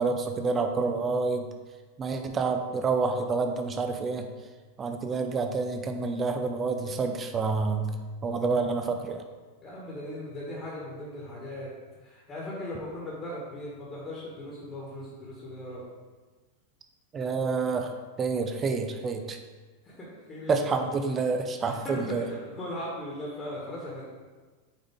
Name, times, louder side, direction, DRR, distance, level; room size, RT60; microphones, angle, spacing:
voice 1, 0.0-1.5 2.0-4.3 4.8-7.9 8.2-9.2 17.1-17.9 18.2-19.4 20.5-22.3, right 4 dB, 20° right, 6 dB, 0.8 m, -28 dB
voice 2, 9.6-11.7 12.0-15.8 17.7-17.8 19.8-20.8 21.2-21.3 21.6-24.1, left 1 dB, 25° left, -5 dB, 1.9 m, -38 dB
9.0 x 5.1 x 3.7 m, 1.4 s
figure-of-eight pair, 90°, 0 cm